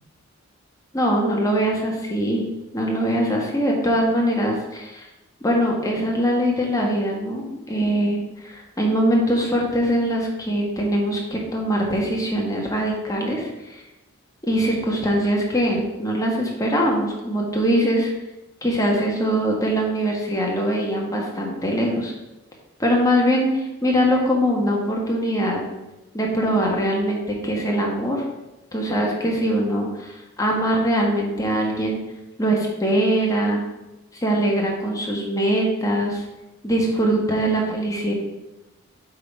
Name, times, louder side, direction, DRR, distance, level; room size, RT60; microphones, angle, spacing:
voice 1, 0.9-2.4 2.7-5.0 5.4-13.8 14.4-18.1 18.6-22.1 22.8-25.6 26.1-28.2 28.7-32.0 32.4-33.6 34.1-36.2 36.6-38.1, equal, 15° left, -1 dB, 1.4 m, -22 dB
7.8 x 3.8 x 5.4 m, 0.98 s
head